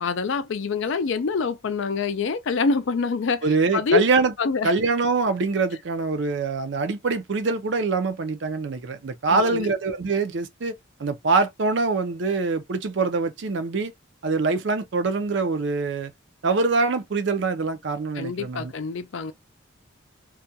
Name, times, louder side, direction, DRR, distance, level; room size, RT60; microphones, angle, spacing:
voice 1, 0.0-3.4 3.7-4.0 4.4-4.7 9.3-9.7 18.1-19.3, left 5 dB, 65° left, 0.4 m, -25 dB
voice 2, 3.4-4.3 4.6-10.7 11.0-13.9 14.2-16.1 16.4-18.7, right 4 dB, 60° right, 0.5 m, -24 dB
2.3 x 2.2 x 2.6 m
head